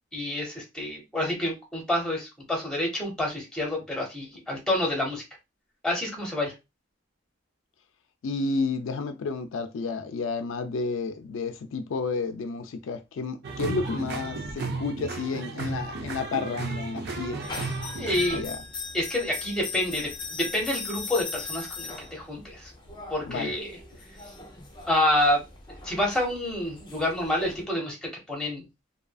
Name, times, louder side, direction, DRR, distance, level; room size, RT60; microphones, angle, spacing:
voice 1, 0.1-5.2 5.8-6.5 18.0-18.4 18.9-22.7 23.1-23.7 24.9-25.4 25.8-28.6, left 1 dB, 5° left, 1.0 m, -28 dB
voice 2, 8.2-17.6 18.3-18.6 23.3-23.5, left 4 dB, 75° left, 0.4 m, -31 dB
sound 1, 13.4-18.4, right 3 dB, 55° right, 0.5 m, -34 dB
sound 2, 17.4-27.6, left 4 dB, 25° left, 0.6 m, -40 dB
2.8 x 2.4 x 2.3 m
head